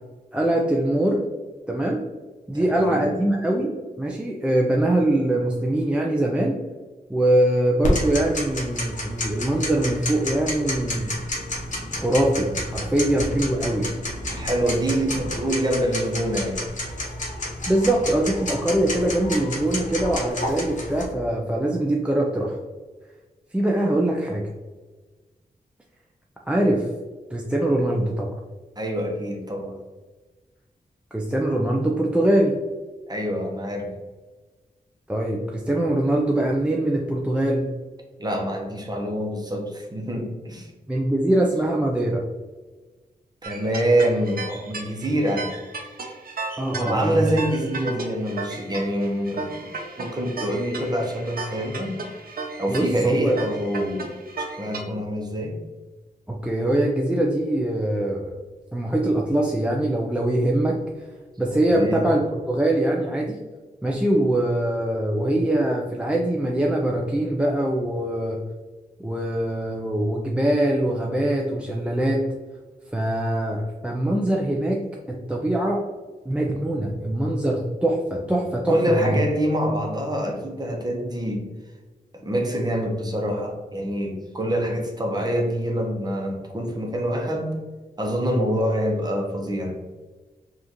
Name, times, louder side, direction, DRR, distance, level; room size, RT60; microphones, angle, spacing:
voice 1, 0.3-1.2 1.7-2.0 2.5-6.6 7.1-11.1 12.0-13.9 17.7-22.6 23.5-24.4 26.5-26.9 27.3-28.3 31.1-32.5 35.1-37.7 40.9-42.2 46.6-47.3 52.7-53.4 56.3-58.3 58.7-60.8 61.4-63.4 63.8-68.4 69.0-72.2 72.9-74.8 75.3-75.8 76.3-79.2, right 1 dB, 5° right, -2 dB, 0.4 m, -23 dB
voice 2, 2.5-3.1 12.8-12.9 14.3-16.6 28.8-29.8 33.1-33.9 38.2-40.7 43.4-45.5 46.8-49.7 50.0-52.0 52.6-54.1 54.4-55.6 61.6-62.2 78.7-81.4 82.2-87.5 88.0-89.7, right 1 dB, 25° right, 1 dB, 0.8 m, -25 dB
Tick-tock, 7.8-21.0, left 1 dB, 50° left, 0.9 m, -30 dB
sound 1, 43.4-54.8, right 3 dB, 65° right, 0.7 m, -35 dB
5.0 x 2.5 x 2.9 m, 1.3 s
wide cardioid pair, 100°, 16 cm